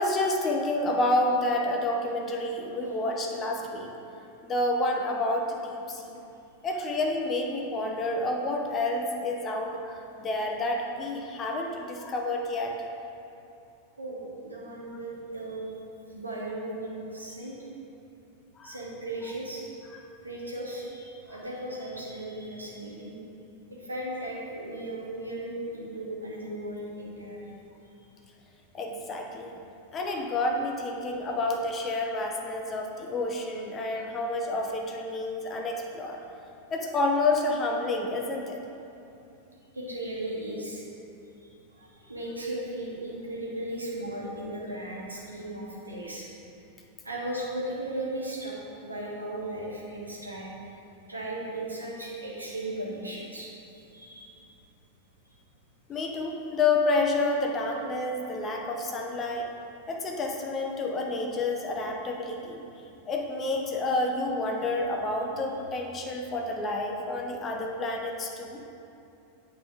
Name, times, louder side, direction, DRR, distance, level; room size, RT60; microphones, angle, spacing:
voice 1, 0.0-3.9 4.4-6.2 6.6-12.7 18.6-18.8 19.9-20.0 21.3-21.4 28.7-29.5 29.9-36.2 36.7-38.6 55.9-59.5 59.9-62.6 63.1-68.6, left 2 dB, 25° left, 1 dB, 0.8 m, -29 dB
voice 2, 14.0-15.7 16.1-17.6 18.6-19.6 20.2-23.2 23.8-27.6 39.7-40.8 41.7-46.3 47.0-48.5 48.8-50.5 51.1-53.5 53.9-54.5, right 1 dB, 80° right, -4 dB, 1.3 m, -36 dB
8.9 x 4.1 x 4.9 m, 2.7 s
figure-of-eight pair, 90°, 0 cm